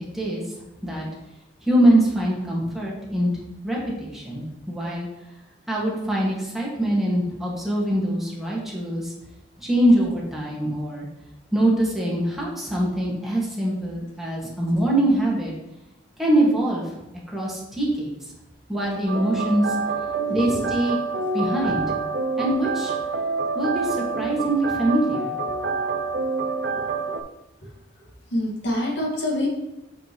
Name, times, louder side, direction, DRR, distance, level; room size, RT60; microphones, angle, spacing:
voice 1, 1.6-3.3 3.6-5.1 5.7-9.1 9.6-11.1 11.5-15.5 16.2-16.8 17.3-18.1 18.7-19.7 20.3-21.0 21.3-21.8 22.4-22.9 23.5-25.3, right 1 dB, ahead, -5 dB, 2.0 m, -23 dB
sound 1, 19.1-27.2, right 4 dB, 70° right, 0.6 m, -27 dB
voice 2, 26.7-27.1 28.3-29.5, left 1 dB, 70° left, -3 dB, 2.0 m, -27 dB
8.7 x 5.3 x 3.2 m, 0.95 s
head